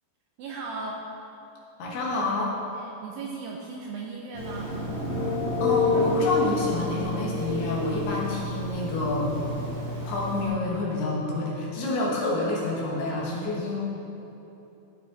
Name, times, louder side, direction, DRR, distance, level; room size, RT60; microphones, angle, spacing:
voice 1, 0.4-1.1 2.8-4.7, right 4 dB, 80° right, -1 dB, 2.1 m, -37 dB
voice 2, 1.8-2.6 5.6-9.3 10.0-13.8, left 2 dB, 75° left, -4 dB, 3.4 m, -28 dB
Telephone, 4.3-10.5, left 3 dB, 45° right, 2.5 m, -28 dB
14.0 x 5.9 x 3.9 m, 3.0 s
omnidirectional pair, 4.7 m